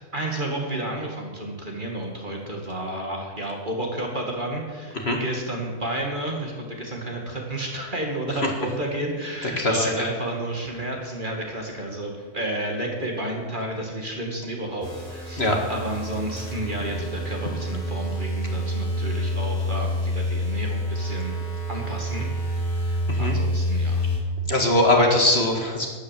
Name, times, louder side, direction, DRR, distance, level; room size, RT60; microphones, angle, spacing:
voice 1, 0.1-24.0, right 1 dB, 30° right, 0 dB, 2.4 m, -31 dB
voice 2, 9.4-9.9 15.4-15.6 23.1-23.3 24.5-25.9, left 1 dB, 40° left, 1 dB, 2.1 m, -21 dB
sound 1, 14.8-24.2, equal, 15° left, 3.9 m, -28 dB
12.0 x 10.5 x 7.6 m, 1.5 s
omnidirectional pair, 1.6 m